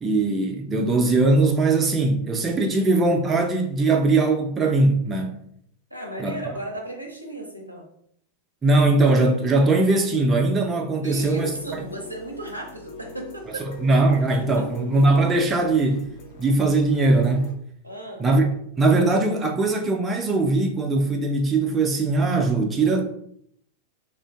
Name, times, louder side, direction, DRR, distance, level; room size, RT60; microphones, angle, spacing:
voice 1, 0.0-5.4 6.2-6.4 8.6-11.5 13.8-16.0 16.4-17.5 18.2-18.4 18.8-23.0, right 2 dB, 20° right, 0.4 m, -20 dB
voice 2, 5.9-7.9 11.0-13.7 14.4-14.7 17.8-18.3, right 1 dB, 90° right, 0.5 m, -35 dB
sound 1, 11.2-17.5, left 2 dB, 45° left, 0.5 m, -43 dB
2.5 x 2.4 x 2.2 m
figure-of-eight pair, 90°, 0 cm